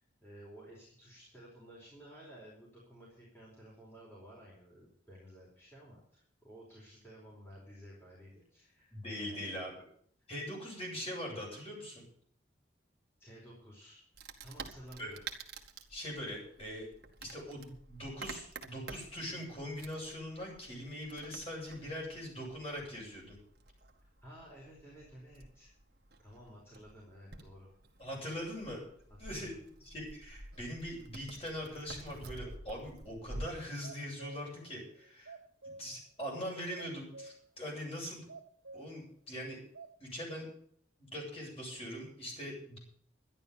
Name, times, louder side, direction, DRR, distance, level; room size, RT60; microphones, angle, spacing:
voice 1, 0.0-9.6 13.2-14.0 14.4-15.3 24.2-25.7 26.2-27.7 29.3-29.5, equal, 10° left, -5 dB, 4.8 m, -54 dB
voice 2, 8.9-9.7 10.3-12.0 15.0-15.1 15.9-16.9 17.2-23.4 28.0-28.8 29.2-29.5 29.8-35.4 35.6-38.3 38.7-39.6 40.0-40.5 41.0-42.8, equal, 30° left, -2 dB, 8.0 m, -42 dB
Wood, 14.1-33.5, right 3 dB, 55° right, 2.0 m, -50 dB
sound 1, 33.0-33.1 33.6-34.5 35.0-35.9 36.4-36.5 36.8-37.5 37.9-38.0 38.3-39.0 39.4-39.9, right 3 dB, 80° right, 1.8 m, -50 dB
12.5 x 11.0 x 7.0 m, 0.62 s
head